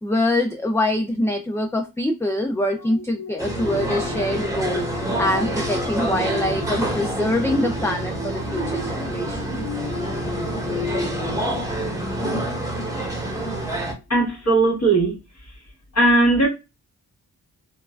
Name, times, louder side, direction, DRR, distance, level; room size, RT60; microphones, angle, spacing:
voice 1, 0.0-9.6, left 1 dB, 5° left, 0.3 m, -24 dB
sound 1, 2.7-12.6 13.0-13.2, left 3 dB, 70° left, 1.1 m, -34 dB
sound 2, 3.4-13.9, right 1 dB, 10° right, 1.1 m, -27 dB
voice 2, 14.1-15.1 15.9-16.5, right 2 dB, 40° left, 1.7 m, -18 dB
3.1 x 2.3 x 2.3 m
cardioid pair, 45°, 39 cm